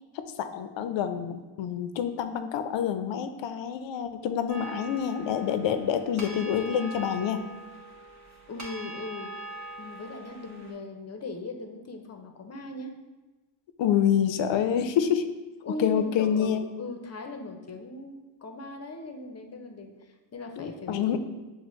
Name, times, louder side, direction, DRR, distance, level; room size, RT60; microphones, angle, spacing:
voice 1, 0.1-7.4 13.8-15.3 15.7-16.6 20.6-21.2, left 8 dB, 75° left, 9 dB, 0.5 m, -27 dB
sound 1, 4.5-10.7, right 2 dB, 40° right, 1.0 m, -42 dB
voice 2, 8.5-9.3 9.8-12.9 15.6-19.9 20.3-21.2, left 2 dB, 35° left, 4 dB, 0.6 m, -39 dB
6.0 x 2.2 x 3.1 m, 1.2 s
cardioid pair, 65°, 45 cm